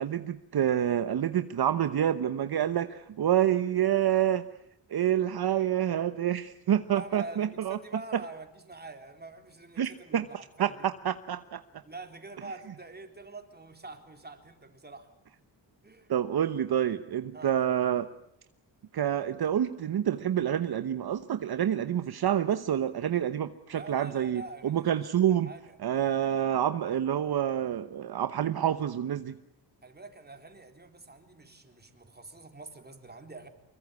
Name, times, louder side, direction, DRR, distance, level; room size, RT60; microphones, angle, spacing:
voice 1, 0.0-4.5 4.9-7.8 9.8-10.2 10.6-11.6 16.1-18.1 18.9-25.5 25.8-29.4, right 10 dB, 60° right, 11 dB, 1.0 m, -28 dB
voice 2, 6.9-10.8 11.9-15.1 15.8-16.1 17.3-17.5 23.7-25.0 25.3-25.8 29.8-33.5, right 3 dB, 20° right, 5 dB, 3.8 m, -45 dB
25.0 x 22.0 x 9.6 m, 0.79 s
cardioid pair, 100°, 43 cm